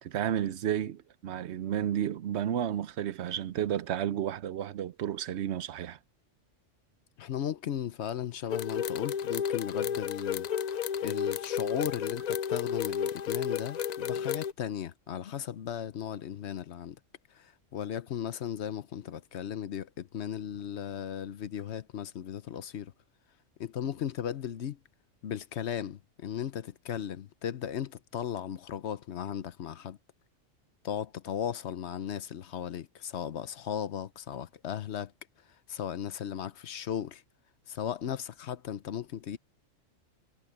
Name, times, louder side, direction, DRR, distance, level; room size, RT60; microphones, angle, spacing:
voice 1, 0.0-6.0, right 10 dB, 70° right, 0.9 m, -32 dB
voice 2, 7.2-10.5 11.0-17.0 17.3-22.9 23.6-24.8 25.2-30.0 30.8-35.1 35.7-37.2 37.7-39.4, left 9 dB, 65° left, 1.0 m, -36 dB
sound 1, 8.5-14.5, left 8 dB, 80° left, 0.3 m, -32 dB
omnidirectional pair, 1.3 m